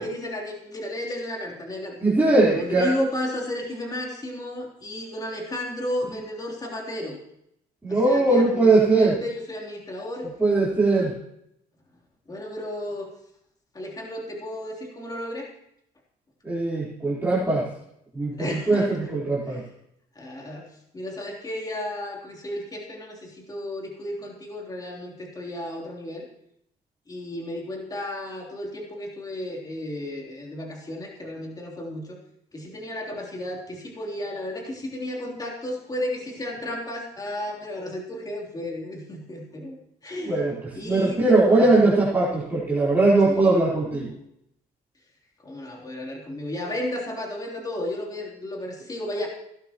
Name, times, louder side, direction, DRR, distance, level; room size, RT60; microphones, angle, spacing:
voice 1, 0.0-2.0 2.5-7.2 7.9-10.3 12.3-13.1 13.7-15.5 18.3-18.9 19.4-19.6 20.1-20.6 20.9-26.2 27.1-32.2 32.5-39.8 40.0-40.4 40.7-41.8 43.2-43.7 45.4-49.3, left 1 dB, 20° left, -1 dB, 3.4 m, -33 dB
voice 2, 2.0-2.9 7.8-9.1 10.4-11.1 16.4-17.6 18.1-19.6 40.3-40.5 40.8-44.1, right 2 dB, 10° right, -9 dB, 4.1 m, -20 dB
16.5 x 12.0 x 3.1 m, 0.76 s
cardioid pair, 110°, 17 cm